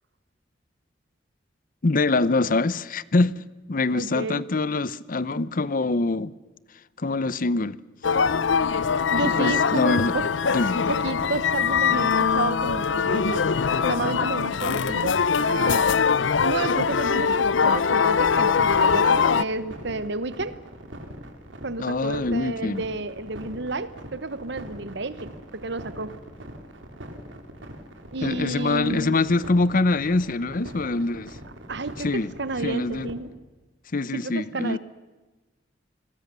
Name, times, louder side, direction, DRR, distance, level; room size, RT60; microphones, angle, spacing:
voice 1, 1.8-6.3 7.0-7.8 9.2-10.2 10.5-10.8 21.8-22.8 28.2-31.4 32.0-32.3 32.6-33.1 33.9-34.8, left 3 dB, 50° left, 0.7 m, -24 dB
voice 2, 3.9-4.5 9.1-10.3 10.9-13.5 13.8-16.0 16.4-20.6 21.6-26.2 28.1-29.2 31.7-32.1 32.4-33.4 34.1-34.8, right 3 dB, 65° right, 1.1 m, -31 dB
sound 1, 8.0-19.4, left 6 dB, 80° left, 0.7 m, -22 dB
sound 2, 18.6-33.1, equal, 85° right, 3.3 m, -42 dB
28.5 x 21.5 x 6.8 m
head